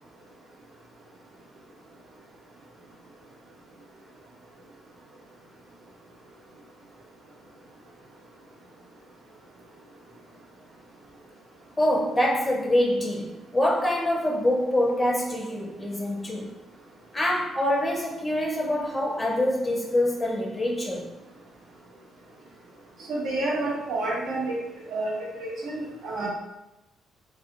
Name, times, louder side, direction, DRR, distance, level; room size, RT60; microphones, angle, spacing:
voice 1, 11.8-16.5 17.1-21.1, left 1 dB, 10° left, -1 dB, 0.5 m, -25 dB
voice 2, 23.1-24.6 24.9-26.3, right 2 dB, 75° right, -3 dB, 1.0 m, -29 dB
3.4 x 2.4 x 2.8 m, 0.94 s
cardioid pair, 90°, 0 cm